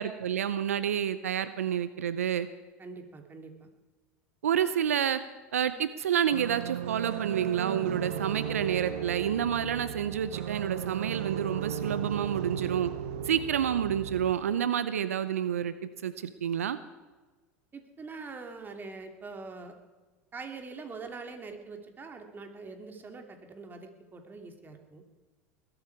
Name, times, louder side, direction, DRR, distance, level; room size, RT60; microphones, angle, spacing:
voice 1, 0.0-2.5 4.4-5.2 5.5-12.9 13.2-15.7 16.0-16.8, right 9 dB, 85° right, 14 dB, 0.6 m, -29 dB
voice 2, 2.8-3.7 17.7-19.7 20.3-25.0, right 4 dB, 25° right, 5 dB, 2.9 m, -44 dB
sound 1, 6.3-14.3, right 8 dB, 70° right, 1.1 m, -36 dB
20.5 x 13.0 x 4.8 m, 1.3 s
hypercardioid pair, 85°, 8 cm